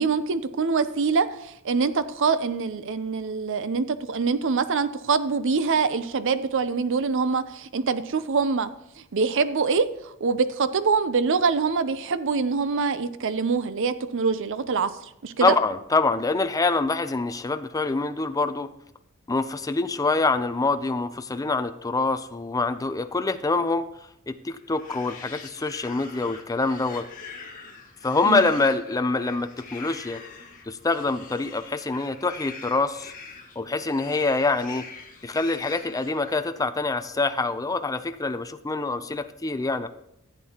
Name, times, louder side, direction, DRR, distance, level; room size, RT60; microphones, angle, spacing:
voice 1, 0.0-8.7 9.1-15.6 28.2-28.5, right 5 dB, 60° right, 13 dB, 0.6 m, -24 dB
voice 2, 15.4-18.7 19.3-23.9 24.3-27.1 28.0-30.2 30.7-33.1 33.6-34.9 35.2-39.9, left 3 dB, 15° left, 10 dB, 0.5 m, -25 dB
sound 1, 24.6-36.6, left 4 dB, 40° left, 1.7 m, -44 dB
14.5 x 8.3 x 2.9 m, 0.82 s
head